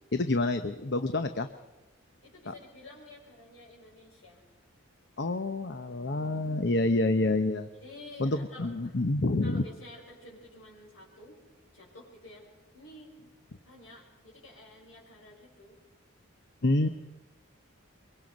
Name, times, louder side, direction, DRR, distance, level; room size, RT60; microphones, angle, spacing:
voice 1, 0.1-1.5 2.5-2.6 5.2-7.7 8.2-9.6 16.6-16.9, left 2 dB, 55° left, 9 dB, 0.8 m, -28 dB
voice 2, 2.2-4.4 7.7-9.0 9.4-11.4 11.7-12.4 12.7-13.2 13.6-15.8, left 1 dB, 75° left, -4 dB, 6.5 m, -50 dB
23.5 x 23.0 x 5.3 m, 1.1 s
head